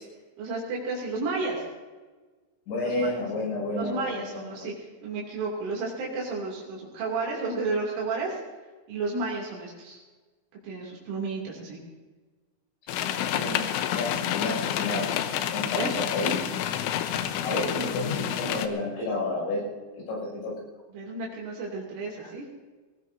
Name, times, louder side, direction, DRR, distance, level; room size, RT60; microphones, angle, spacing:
voice 1, 0.4-1.6 2.8-3.2 3.8-8.4 8.9-10.0 10.6-11.8 15.8-15.9 17.8-17.9 20.9-22.5, right 3 dB, 80° right, -4 dB, 5.3 m, -32 dB
voice 2, 2.7-4.7 13.3-13.6 13.9-15.1 15.4-16.4 17.4-19.6 20.1-20.5 22.2-22.3, left 2 dB, 70° left, -3 dB, 8.6 m, -31 dB
sound 1, 12.9-18.7, left 10 dB, 85° left, 3.2 m, -29 dB
21.0 x 19.5 x 2.7 m, 1.3 s
omnidirectional pair, 5.5 m